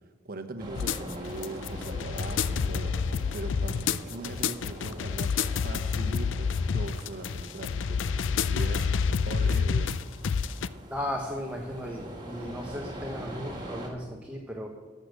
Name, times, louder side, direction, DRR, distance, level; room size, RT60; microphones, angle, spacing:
voice 1, 0.2-8.9 9.2-10.0, right 2 dB, 50° right, 7 dB, 0.9 m, -40 dB
sound 1, 0.6-13.9, equal, 25° right, 2.0 m, -44 dB
sound 2, 0.7-10.7, left 6 dB, 75° left, 0.4 m, -28 dB
voice 2, 10.9-14.7, equal, 5° right, 1 dB, 0.9 m, -36 dB
12.5 x 6.6 x 6.5 m, 1.4 s
head